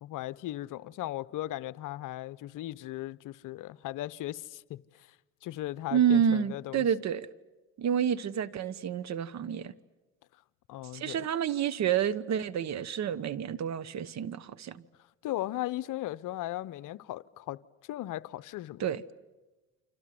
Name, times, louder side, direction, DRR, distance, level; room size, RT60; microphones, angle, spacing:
voice 1, 0.0-4.8 5.4-6.8 10.7-11.3 15.2-17.6 17.9-18.8, left 15 dB, 55° left, 0.9 m, -37 dB
voice 2, 5.9-7.3 7.8-9.7 10.9-14.8 18.8-19.0, right 8 dB, 45° right, 1.2 m, -29 dB
29.0 x 26.0 x 7.8 m
supercardioid pair, 85°, 36 cm